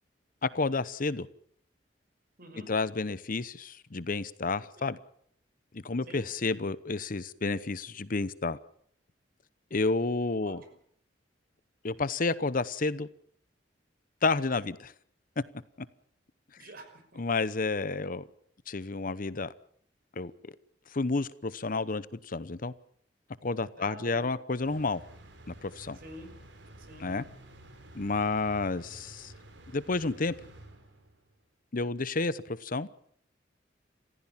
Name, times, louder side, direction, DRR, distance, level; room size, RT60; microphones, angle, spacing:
voice 1, 0.4-1.3 2.7-5.0 5.7-8.6 9.7-10.6 11.8-13.1 14.2-14.9 17.2-18.2 18.7-19.5 20.2-20.5 20.9-22.7 23.4-25.0 25.5-26.0 27.0-27.2 27.9-29.3 29.7-30.3 31.7-32.9, left 3 dB, 50° left, 0.9 m, -30 dB
voice 2, 2.4-2.7 6.1-6.2 10.4-10.5 16.6-17.2 23.8-24.3 26.0-26.3 26.8-27.1, right 1 dB, 55° right, 5.7 m, -47 dB
sound 1, 24.6-31.3, right 1 dB, 80° right, 4.4 m, -51 dB
28.5 x 15.5 x 7.4 m
head